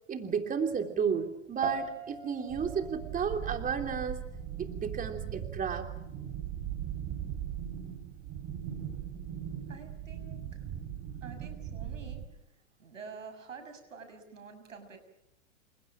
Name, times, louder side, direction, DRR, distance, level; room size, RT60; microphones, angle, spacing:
voice 1, 0.1-4.2 4.6-5.9, right 6 dB, 20° right, 5 dB, 3.2 m, -32 dB
sound 1, 1.6-11.2, right 4 dB, 65° right, 5.3 m, -47 dB
sound 2, 2.5-12.2, right 9 dB, 40° right, 6.4 m, -39 dB
voice 2, 9.7-10.6 11.2-12.2 12.8-15.0, right 5 dB, 90° right, 8 dB, 6.7 m, -48 dB
29.5 x 27.5 x 6.2 m, 0.80 s
hypercardioid pair, 105°, 37 cm